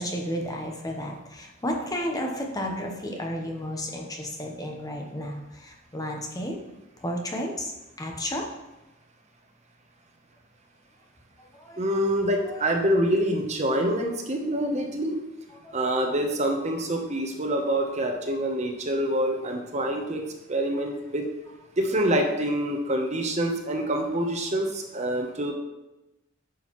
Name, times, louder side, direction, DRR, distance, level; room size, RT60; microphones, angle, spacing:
voice 1, 0.0-6.6 7.0-7.7 8.0-8.4 11.4-11.9 12.4-12.7 15.5-15.8 16.0-16.1, equal, 20° left, 1 dB, 0.9 m, -32 dB
voice 2, 11.8-15.2 15.7-20.2 20.5-21.3 21.8-25.5, right 1 dB, 35° right, 3 dB, 0.9 m, -26 dB
9.5 x 6.2 x 3.1 m, 0.98 s
head